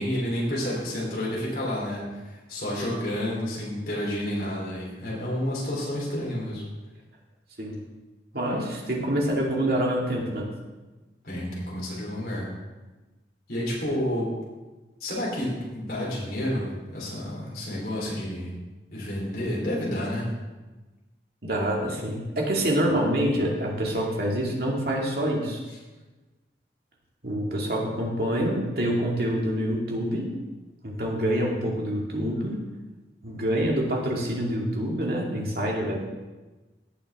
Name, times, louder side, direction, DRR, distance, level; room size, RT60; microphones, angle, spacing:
voice 1, 0.0-6.6 11.2-12.5 13.5-14.3 15.0-18.5 18.9-20.3, left 1 dB, 55° left, -5 dB, 3.8 m, -30 dB
voice 2, 8.3-10.5 21.4-25.6 27.2-30.3 30.8-32.6 33.2-36.0, equal, 60° right, -2 dB, 2.3 m, -26 dB
17.0 x 6.4 x 3.6 m, 1.2 s
head